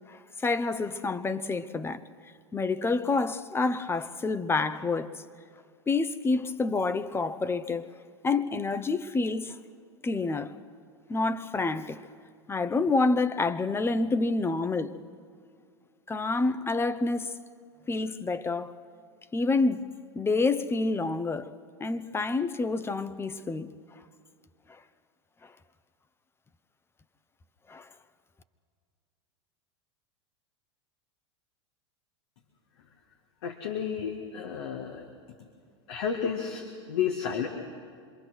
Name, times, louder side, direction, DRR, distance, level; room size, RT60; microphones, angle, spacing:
voice 1, 0.1-2.0 2.5-5.1 5.9-7.9 8.2-9.6 10.0-10.5 11.1-12.0 12.5-15.0 16.1-17.3 17.9-18.7 19.3-19.9 20.2-21.5 21.8-23.7 27.7-27.9, left 3 dB, 15° left, 0.9 m, -28 dB
voice 2, 33.4-35.0 35.9-37.5, left 7 dB, 70° left, 2.1 m, -31 dB
26.5 x 22.0 x 6.3 m
hypercardioid pair, 95°, 15 cm